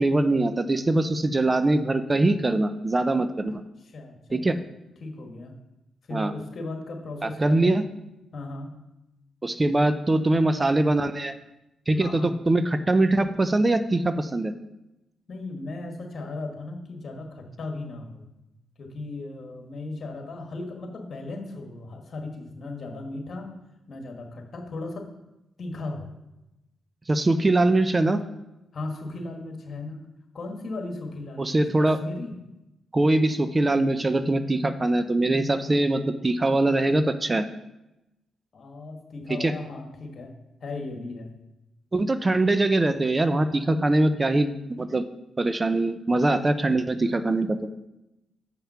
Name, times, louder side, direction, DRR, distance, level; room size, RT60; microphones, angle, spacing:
voice 1, 0.0-3.6 4.3-4.6 6.1-6.3 7.2-7.8 9.4-11.3 11.9-14.5 27.1-28.2 31.4-32.0 32.9-37.5 39.3-39.5 41.9-44.5 44.8-45.0 45.4-47.9, right 2 dB, 30° right, 11 dB, 0.6 m, -22 dB
voice 2, 3.8-4.4 5.0-5.5 6.1-7.9 8.3-8.7 12.0-12.4 15.3-18.2 18.8-23.5 23.9-25.1 25.6-26.1 28.7-30.0 30.3-32.3 38.5-40.3 40.6-41.3, left 2 dB, 55° left, 3 dB, 1.8 m, -36 dB
7.3 x 5.7 x 5.7 m, 0.94 s
supercardioid pair, 55°, 0 cm